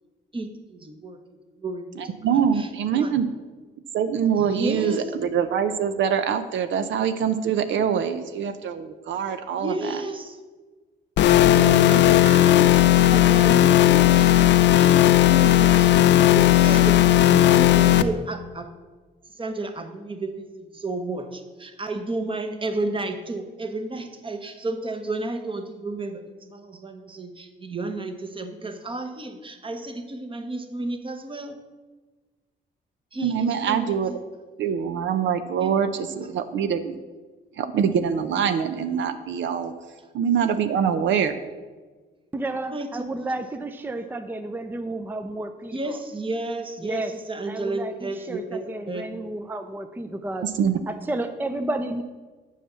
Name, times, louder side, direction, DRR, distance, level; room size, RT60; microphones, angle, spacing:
voice 1, 0.3-2.7 2.9-3.1 4.4-5.0 9.6-10.4 11.4-18.8 19.3-31.6 33.1-34.2 35.6-35.8 42.7-43.0 45.7-49.1, right 2 dB, 25° right, 7 dB, 1.1 m, -32 dB
voice 2, 2.0-3.3 3.9-9.9 33.2-34.1 34.6-37.0 37.6-39.7 40.1-41.3 50.4-50.8, right 7 dB, 70° right, 10 dB, 0.6 m, -24 dB
sound 1, 11.2-18.0, left 13 dB, 65° left, 0.5 m, -16 dB
voice 3, 42.3-46.0 46.8-47.1 47.4-50.5 50.9-52.0, right 2 dB, 10° right, 8 dB, 0.5 m, -31 dB
7.4 x 5.7 x 6.8 m, 1.3 s
cardioid pair, 90°, 20 cm